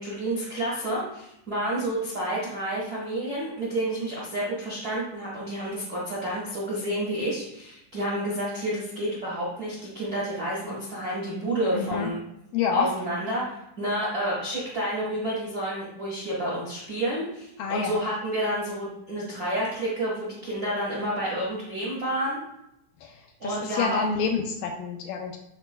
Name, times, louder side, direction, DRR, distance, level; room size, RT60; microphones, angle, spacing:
voice 1, 0.0-12.2 12.7-22.4 23.4-24.0, right 1 dB, 50° right, -7 dB, 1.1 m, -30 dB
voice 2, 11.7-12.1 12.5-12.9 17.6-18.0 23.0-23.2 23.4-25.4, left 5 dB, 80° left, 4 dB, 2.0 m, -28 dB
11.0 x 4.1 x 2.3 m, 0.83 s
omnidirectional pair, 4.2 m